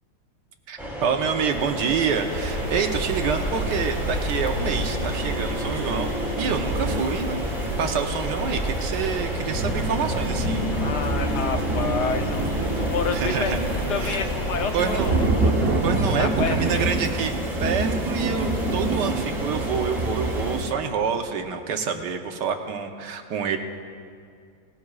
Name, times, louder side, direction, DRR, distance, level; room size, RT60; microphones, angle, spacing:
voice 1, 0.7-7.4 7.8-10.6 13.1-13.6 14.0-14.2 14.7-15.1 15.8-17.3 17.6-23.6, right 6 dB, 70° right, 5 dB, 1.4 m, -27 dB
sound 1, 0.8-20.6, equal, ahead, 2.9 m, -33 dB
sound 2, 1.5-20.7, right 2 dB, 40° right, 0.9 m, -29 dB
sound 3, 2.2-15.3, equal, 30° left, 3.3 m, -30 dB
voice 2, 10.7-12.5 12.8-15.6 16.2-16.9, left 5 dB, 70° left, 5 dB, 1.3 m, -29 dB
19.0 x 19.0 x 2.4 m, 2.2 s
omnidirectional pair, 2.0 m